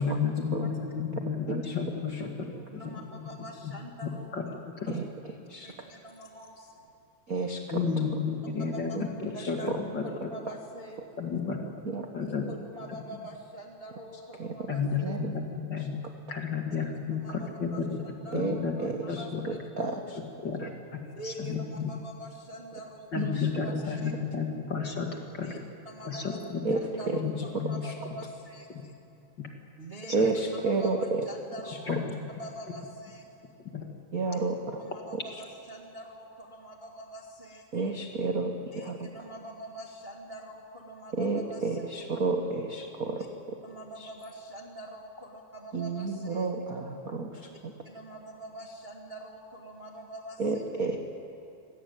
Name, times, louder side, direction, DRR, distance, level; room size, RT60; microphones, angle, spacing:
voice 1, 0.0-2.5 2.7-3.7 4.0-4.9 7.7-10.3 11.2-11.6 12.1-12.5 12.9-13.0 14.7-16.0 16.3-18.0 18.3-18.8 19.1-19.4 20.4-21.8 23.1-25.5 26.0-26.6 27.1-27.8 28.7-28.8 29.4-29.5 30.2-30.3 31.9-32.1 33.7-33.9, left 5 dB, 40° left, 2 dB, 2.1 m, -32 dB
voice 2, 2.7-4.5 5.6-6.9 7.8-8.0 8.6-9.0 9.3-9.7 10.0-11.0 12.5-15.2 17.1-17.8 18.2-19.6 21.0-23.3 23.6-23.7 24.0-24.1 25.4-25.6 25.8-26.4 26.7-27.2 27.5-28.9 29.8-30.3 30.6-32.0 32.4-33.2 34.2-34.4 34.8-37.6 38.7-41.8 43.1-43.3 43.6-46.5 47.8-50.6, right 1 dB, 30° right, 0 dB, 1.3 m, -45 dB
voice 3, 7.3-7.8 9.0-9.1 9.4-9.8 11.8-12.1 14.4-14.7 15.0-15.4 18.3-20.2 23.2-23.5 26.6-27.2 27.5-27.6 30.1-31.2 31.7-31.8 34.1-34.8 37.7-39.1 41.1-43.3 44.0-44.1 45.7-47.7 50.4-51.0, right 3 dB, 50° right, 3 dB, 1.1 m, -31 dB
26.0 x 17.0 x 9.4 m, 2.7 s
omnidirectional pair, 3.6 m